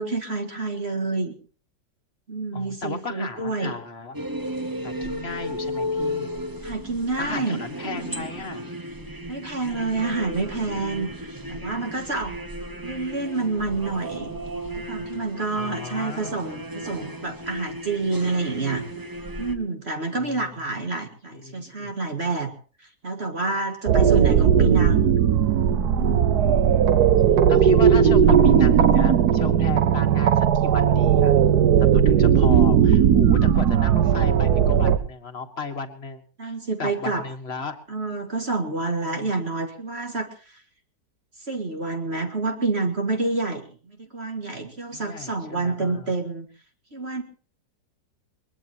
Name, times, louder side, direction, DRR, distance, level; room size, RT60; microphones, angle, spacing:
voice 1, 0.0-1.4 2.3-3.8 6.6-7.6 9.3-12.4 12.8-14.4 14.7-18.9 19.4-22.5 22.8-25.2 25.9-26.4 29.8-29.9 36.4-37.3 37.9-40.6 41.4-46.5 46.9-47.2, right 3 dB, 35° right, 5 dB, 2.1 m, -28 dB
voice 2, 2.5-4.2 4.8-6.3 7.2-8.6 15.6-16.3 20.1-20.5 20.8-20.9 21.3-21.9 26.4-27.0 27.5-31.4 31.9-37.8 39.0-39.3 44.9-46.1, left 4 dB, 35° left, 7 dB, 2.0 m, -35 dB
sound 1, 4.1-19.6, equal, 15° right, 1.0 m, -34 dB
sound 2, 23.9-35.0, right 8 dB, 65° right, 1.4 m, -17 dB
21.5 x 21.0 x 2.9 m, 0.38 s
omnidirectional pair, 1.9 m